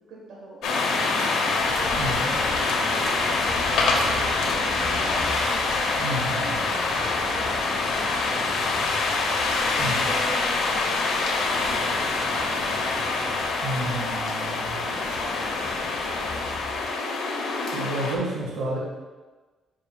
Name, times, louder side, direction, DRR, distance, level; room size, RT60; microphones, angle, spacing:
voice 1, 0.1-0.9 1.5-2.4 2.8-5.6 6.4-9.1 9.6-12.9 13.6-14.1 14.6-15.5, right 2 dB, 70° right, -4 dB, 1.2 m, -41 dB
sound 1, 0.6-18.2, left 3 dB, 85° left, 0.9 m, -25 dB
voice 2, 6.0-6.6 9.8-10.1 13.6-14.6 17.7-18.8, right 1 dB, 85° right, -3 dB, 1.5 m, -30 dB
7.4 x 5.6 x 2.3 m, 1.3 s
cardioid pair, 90°, 0 cm